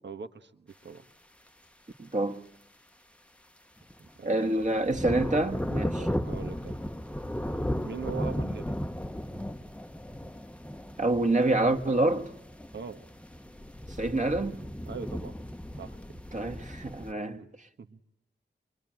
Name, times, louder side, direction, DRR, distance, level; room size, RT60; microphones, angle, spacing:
voice 1, 0.0-1.0 4.0-4.6 6.0-6.8 7.8-8.8 12.7-13.1 14.9-15.4 15.8-16.0 17.4-17.5 17.8-18.0, right 6 dB, 75° right, 1.5 m, -41 dB
voice 2, 2.0-2.4 4.2-6.1 11.0-12.3 14.0-14.6 16.3-17.4, right 2 dB, 40° right, 1.9 m, -27 dB
sound 1, 3.8-4.1 4.4-17.1, equal, 5° left, 1.0 m, -35 dB
25.0 x 24.0 x 9.1 m
wide cardioid pair, 95°, 19 cm